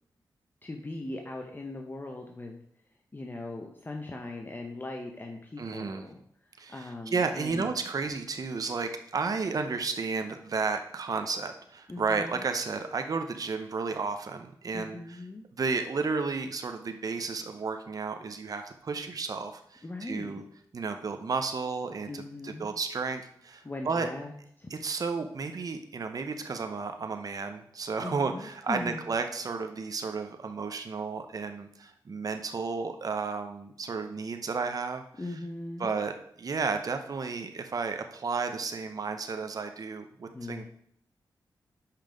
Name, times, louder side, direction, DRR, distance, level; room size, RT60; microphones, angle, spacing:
voice 1, 0.6-2.6 3.1-6.2 6.5-7.7 11.9-12.5 14.7-15.4 19.8-20.4 22.1-22.7 23.6-24.3 24.6-24.7 28.0-29.1 35.2-36.0 40.3-40.7, left 2 dB, 25° left, 2 dB, 0.8 m, -39 dB
voice 2, 5.6-6.0 6.6-15.2 15.6-20.4 20.7-24.1 24.7-35.0 35.8-40.7, right 4 dB, 50° right, 6 dB, 0.7 m, -32 dB
5.7 x 5.5 x 5.1 m, 0.68 s
cardioid pair, 75°, 8 cm